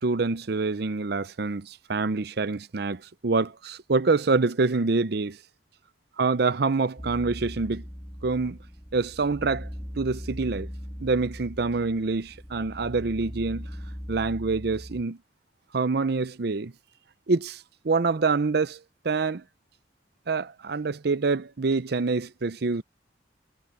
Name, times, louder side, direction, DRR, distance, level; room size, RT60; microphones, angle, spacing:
voice 1, 0.0-5.4 6.2-7.8 8.2-8.6 8.9-9.7 10.0-10.7 11.0-13.7 14.1-15.2 15.7-16.7 17.3-18.8 19.0-19.4 20.3-22.8, right 4 dB, 60° right, 0.6 m, -26 dB
sound 1, 7.0-15.0, equal, 5° left, 2.8 m, -40 dB
head